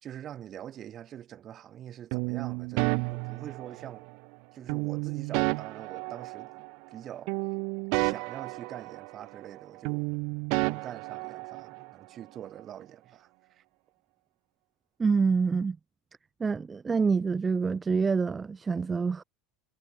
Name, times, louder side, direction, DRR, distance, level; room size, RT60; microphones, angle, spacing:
voice 1, 0.0-4.1 4.5-7.4 7.9-10.1 10.6-13.6, right 10 dB, 40° right, 2.2 m, -44 dB
sound 1, 2.1-4.1 4.7-7.0 7.3-9.6 9.8-11.9, right 34 dB, 65° right, 1.4 m, -32 dB
voice 2, 15.0-15.8 16.4-19.2, right 5 dB, 20° right, 0.5 m, -26 dB
supercardioid pair, 125°, 0 cm